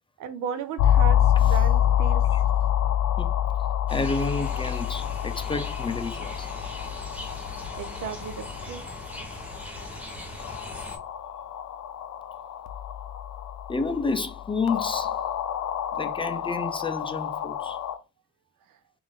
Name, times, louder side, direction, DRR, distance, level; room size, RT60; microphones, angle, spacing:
voice 1, 0.2-2.3 7.7-8.8, right 7 dB, 85° right, 0.6 m, -34 dB
sound 1, 0.8-18.0, left 10 dB, 65° left, 0.5 m, -27 dB
voice 2, 3.9-6.5 13.7-15.2 15.9-17.8, left 3 dB, 15° left, 0.4 m, -30 dB
sound 2, 3.9-11.0, equal, 5° right, 1.1 m, -40 dB
3.5 x 2.5 x 3.6 m
cardioid pair, 90°, 30 cm